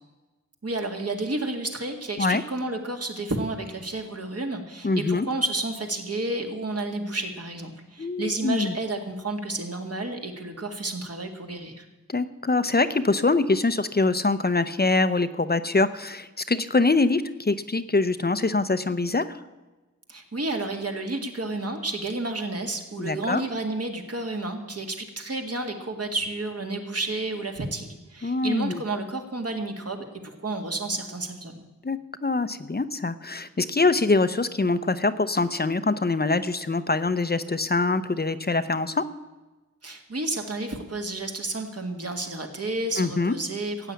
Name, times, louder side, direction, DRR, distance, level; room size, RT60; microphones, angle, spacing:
voice 1, 0.6-11.9 20.1-30.1 30.4-31.6 39.8-43.9, right 2 dB, 50° right, 4 dB, 2.1 m, -31 dB
voice 2, 4.8-5.3 8.0-8.7 12.1-19.4 23.0-23.4 28.2-28.8 31.8-39.0 43.0-43.3, left 3 dB, 30° left, 13 dB, 0.7 m, -24 dB
15.0 x 9.0 x 8.4 m, 1.2 s
wide cardioid pair, 90°, 31 cm